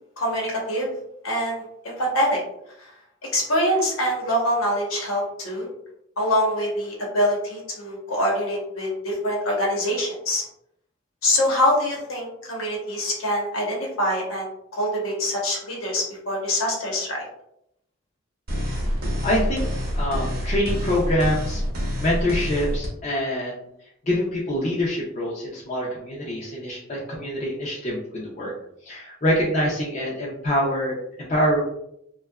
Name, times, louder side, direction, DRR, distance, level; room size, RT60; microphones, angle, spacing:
voice 1, 0.2-0.9 1.2-2.4 2.8-2.9 3.2-5.7 6.2-10.4 11.2-17.3, equal, 80° left, -2 dB, 0.9 m, -24 dB
sound 1, 18.5-22.9, equal, 45° right, 0.7 m, -26 dB
voice 2, 18.7-21.6 22.0-23.7 24.0-28.5 28.8-31.6, equal, 35° left, -5 dB, 0.4 m, -25 dB
2.7 x 2.2 x 2.2 m, 0.77 s
head